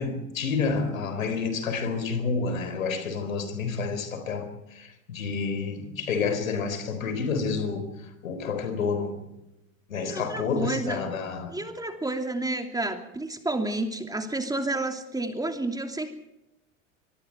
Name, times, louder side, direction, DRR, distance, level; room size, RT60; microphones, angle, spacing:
voice 1, 0.0-9.2 9.9-11.6, left 5 dB, 75° left, 4.2 m, -29 dB
voice 2, 10.0-11.0 11.5-16.1, right 2 dB, 10° right, 2.9 m, -30 dB
25.5 x 23.5 x 4.7 m
figure-of-eight pair, 80°, 41 cm